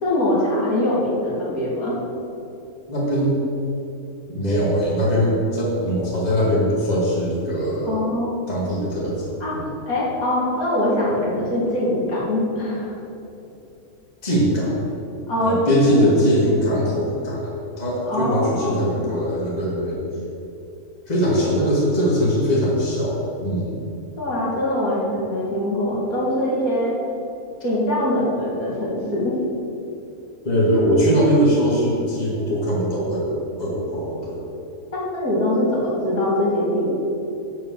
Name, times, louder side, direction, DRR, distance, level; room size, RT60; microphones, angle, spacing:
voice 1, 0.0-1.9 7.8-8.3 9.4-9.6 9.9-12.9 15.3-15.6 15.9-16.0 18.0-19.2 24.2-26.9 27.6-29.3 34.9-36.9, left 1 dB, 65° left, -6 dB, 2.8 m, -23 dB
voice 2, 2.9-3.4 4.3-8.1 8.5-9.7 14.2-14.8 15.4-20.0 21.1-23.8 30.4-34.5, equal, 25° left, -5 dB, 2.2 m, -21 dB
12.0 x 4.7 x 7.5 m, 2.7 s
omnidirectional pair, 1.6 m